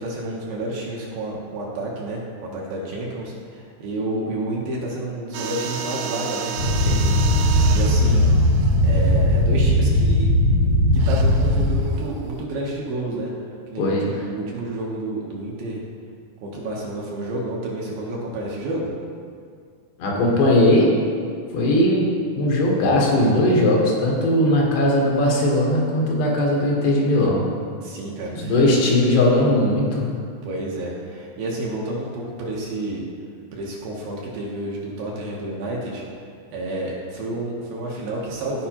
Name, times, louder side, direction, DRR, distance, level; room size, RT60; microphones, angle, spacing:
voice 1, 0.0-7.3 7.7-8.3 8.8-10.3 10.9-13.3 13.7-15.8 16.4-18.9 27.8-28.6 30.4-33.0 33.5-36.0 36.5-38.7, right 1 dB, 70° right, -3 dB, 2.5 m, -30 dB
sound 1, 5.3-9.9 11.0-12.4, right 7 dB, 90° right, 2.0 m, -33 dB
sound 2, 6.6-11.8, left 1 dB, 65° left, 1.7 m, -18 dB
voice 2, 20.0-20.9 21.5-22.1 22.3-27.4 28.3-30.1, left 1 dB, 80° left, -3 dB, 3.4 m, -18 dB
14.5 x 4.9 x 2.9 m, 2.2 s
omnidirectional pair, 4.7 m